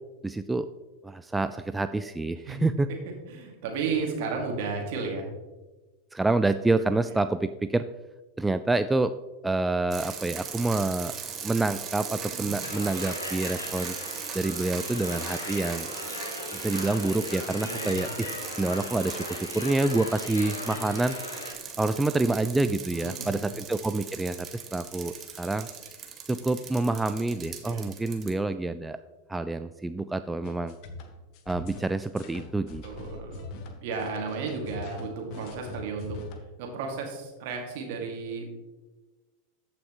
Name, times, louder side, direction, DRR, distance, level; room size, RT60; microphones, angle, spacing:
voice 1, 0.2-0.7 1.0-2.9 6.1-7.8 8.4-9.1 9.4-11.1 11.4-14.0 14.3-15.9 16.5-18.3 18.6-21.2 21.8-25.7 26.3-29.0 29.3-30.7 31.5-32.8, right 2 dB, 10° right, 11 dB, 0.3 m, -27 dB
voice 2, 3.3-5.2 12.3-12.6 17.5-18.2 20.4-21.0 21.7-21.9 22.9-23.5 27.6-27.8 32.8-33.5 33.8-36.2 36.6-38.4, right 4 dB, 55° right, 2 dB, 2.2 m, -34 dB
sound 1, 9.9-28.3, right 7 dB, 30° right, 1.3 m, -39 dB
sound 2, 12.6-21.5, left 2 dB, 80° left, 1.3 m, -38 dB
sound 3, 30.4-36.4, left 3 dB, 50° left, 1.1 m, -42 dB
14.5 x 5.9 x 3.1 m, 1.2 s
figure-of-eight pair, 90°, 0 cm